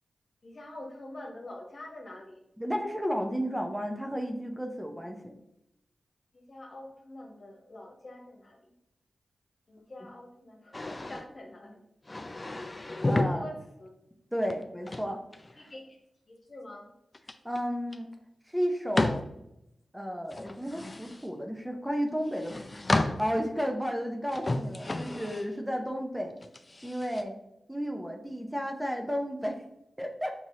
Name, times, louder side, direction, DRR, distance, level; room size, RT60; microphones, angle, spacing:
voice 1, 0.4-2.4 6.3-8.7 9.7-11.8 13.3-13.9 15.6-16.0 16.3-16.9, left 1 dB, 55° left, 0 dB, 1.1 m, -45 dB
voice 2, 2.6-5.3 10.0-10.1 13.0-13.5 14.3-15.2 15.5-15.7 17.4-18.1 18.5-19.2 19.9-22.5 22.9-26.4 26.8-27.4 27.7-29.7 30.0-30.3, equal, 5° right, 3 dB, 0.6 m, -33 dB
sound 1, 10.7-11.2 12.1-13.3 14.5-15.7 17.1-17.6 17.9-18.0 18.9-19.3 20.3-21.3 22.3-23.3 24.3-25.5 26.4-27.2, left 2 dB, 35° left, 0.4 m, -31 dB
6.1 x 2.8 x 2.7 m, 0.83 s
cardioid pair, 45°, 0 cm